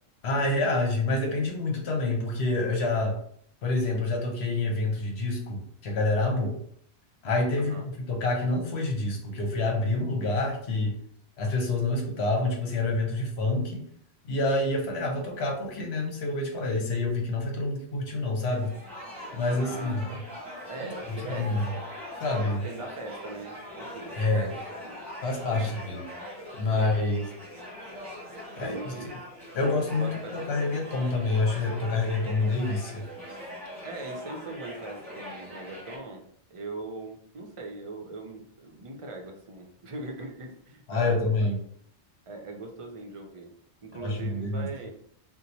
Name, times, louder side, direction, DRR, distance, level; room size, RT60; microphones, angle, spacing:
voice 1, 0.2-3.2 3.6-6.6 7.2-11.0 11.4-13.8 14.2-18.7 19.3-20.0 21.1-21.6 22.2-22.6 24.2-24.5 25.2-26.0 26.6-27.2 28.6-28.8 29.5-33.0 40.9-41.6 44.0-44.7, left 2 dB, 70° left, 2 dB, 1.0 m, -27 dB
voice 2, 7.6-7.9 19.6-20.1 20.6-21.8 22.6-24.6 24.8-24.9 25.6-25.9 26.8-27.2 28.6-29.1 29.5-30.4 33.8-36.2 36.5-41.5 42.3-43.5 43.8-44.9, right 2 dB, 45° right, 2 dB, 0.4 m, -40 dB
sound 1, 18.5-36.0, equal, 20° right, 1.0 m, -42 dB
2.8 x 2.1 x 3.9 m, 0.65 s
omnidirectional pair, 1.2 m